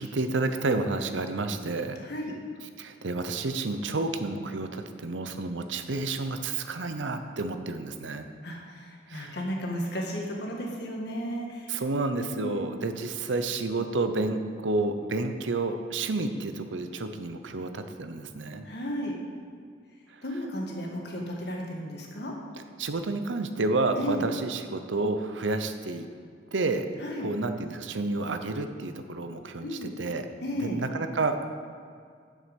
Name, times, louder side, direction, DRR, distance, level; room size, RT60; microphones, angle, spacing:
voice 1, 0.0-2.0 2.6-8.3 9.1-9.4 11.7-18.6 22.8-26.1 26.5-26.9 27.2-30.3 30.5-31.5, right 3 dB, 85° right, 8 dB, 0.7 m, -30 dB
voice 2, 2.0-2.3 8.4-11.7 12.2-12.7 18.6-19.1 20.2-22.3 23.9-24.2 27.0-27.3 29.6-29.9 30.4-30.8, equal, 60° left, 0 dB, 1.7 m, -34 dB
9.3 x 7.4 x 5.3 m, 2.2 s
head